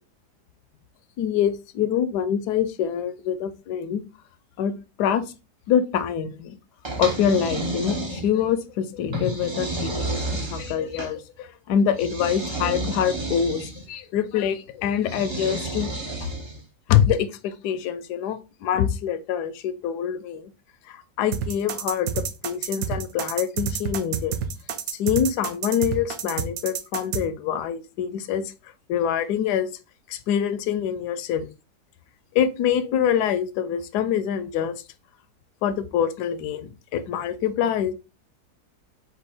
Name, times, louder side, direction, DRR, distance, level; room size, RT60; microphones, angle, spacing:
voice 1, 1.2-4.0 4.6-4.7 5.0-5.2 5.7-6.5 7.0-15.9 16.2-16.3 16.9-20.5 20.9-24.4 24.9-28.5 28.9-29.7 30.1-31.5 32.3-34.7 35.6-37.9, left 9 dB, 80° left, 1.1 m, -25 dB
sound 1, 6.8-8.5 9.1-11.1 12.0-13.8 15.0-16.6, right 2 dB, 35° right, 0.4 m, -31 dB
sound 2, 21.3-27.2, right 8 dB, 65° right, 1.0 m, -28 dB
4.4 x 2.5 x 4.2 m
omnidirectional pair, 1.7 m